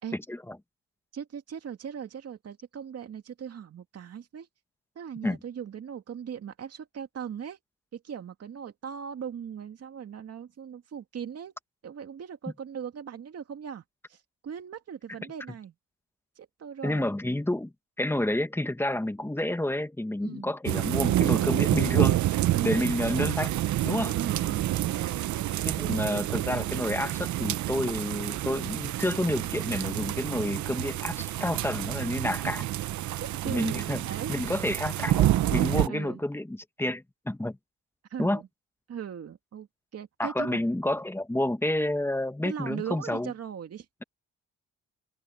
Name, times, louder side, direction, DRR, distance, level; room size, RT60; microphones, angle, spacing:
voice 1, 0.1-0.6 5.2-5.4 16.8-17.7 18.0-22.2 22.6-23.5 23.8-24.2 25.6-32.6 33.4-34.0 34.3-37.6 38.2-38.4 40.2-43.3, left 1 dB, 10° left, 1.5 m, -29 dB
voice 2, 1.1-4.5 5.0-7.6 7.9-11.5 11.8-13.8 14.1-15.7 16.4-17.1 20.2-20.5 22.5-23.0 24.1-25.5 25.8-26.3 33.4-34.4 35.9-36.2 38.1-38.5 38.9-39.7 39.9-40.6 42.4-43.9, right 8 dB, 55° right, 2.3 m, -39 dB
sound 1, 20.7-35.9, right 14 dB, 70° right, 0.8 m, -28 dB
open air
cardioid pair, 90°, 30 cm